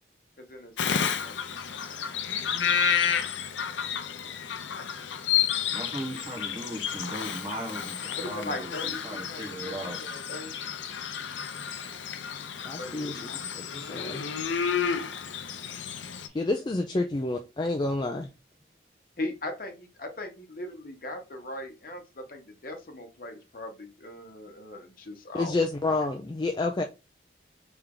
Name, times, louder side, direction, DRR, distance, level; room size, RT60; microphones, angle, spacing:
voice 1, 0.5-1.4 8.1-10.6 12.8-13.3 19.2-25.6, left 1 dB, 50° left, 0.9 m, -39 dB
Bird vocalization bird call bird song, 0.8-16.3, left 7 dB, 85° left, 0.5 m, -31 dB
voice 2, 5.7-10.0 16.3-16.4, right 1 dB, 30° right, 1.3 m, -37 dB
voice 3, 12.6-13.3 13.6-14.2 16.3-18.3 25.3-26.8, left 2 dB, 25° left, 0.3 m, -29 dB
3.5 x 3.4 x 3.6 m
head